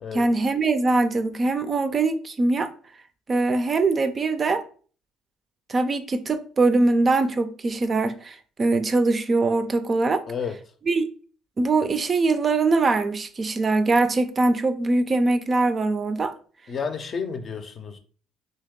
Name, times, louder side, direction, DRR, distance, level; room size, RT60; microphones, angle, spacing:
voice 1, 0.1-2.7 3.3-4.6 5.7-10.2 10.9-11.1 11.6-16.3, right 3 dB, 35° right, 0.4 m, -22 dB
voice 2, 10.3-10.6 16.7-18.0, left 6 dB, 45° left, 0.5 m, -31 dB
2.8 x 2.8 x 3.6 m
supercardioid pair, 85°, 0 cm